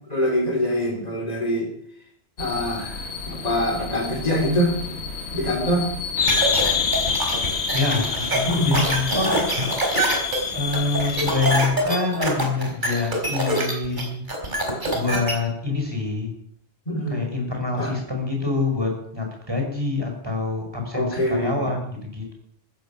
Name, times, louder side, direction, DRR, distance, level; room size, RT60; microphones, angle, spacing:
voice 1, 0.1-1.7 2.4-4.7 5.3-5.9 8.4-8.7 16.9-17.2 17.8-17.9 20.9-21.7, equal, 35° left, 1 dB, 3.7 m, -24 dB
sound 1, 2.4-11.6, left 5 dB, 85° left, 1.8 m, -28 dB
sound 2, 6.3-15.3, right 1 dB, 45° right, 4.3 m, -24 dB
voice 2, 7.7-9.5 10.5-14.2 14.9-16.3 17.1-22.3, left 3 dB, 25° right, 2 dB, 5.3 m, -26 dB
15.0 x 14.5 x 5.9 m, 0.68 s
omnidirectional pair, 1.1 m